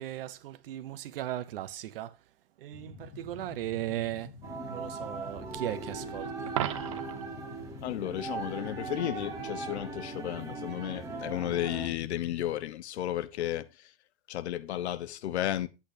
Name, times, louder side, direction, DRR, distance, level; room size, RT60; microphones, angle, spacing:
voice 1, 0.0-2.2 2.6-4.4 4.7-6.6, right 13 dB, 60° right, 0.8 m, -37 dB
sound 1, 2.7-12.5, left 5 dB, 55° left, 1.4 m, -48 dB
sound 2, 4.4-11.9, right 4 dB, 10° right, 0.9 m, -39 dB
Coin (dropping), 6.5-7.3 13.4-13.6, right 13 dB, 30° right, 0.4 m, -34 dB
voice 2, 7.8-13.9 14.3-15.7, left 12 dB, 90° left, 1.0 m, -33 dB
10.5 x 8.5 x 2.7 m
supercardioid pair, 180°, 32 cm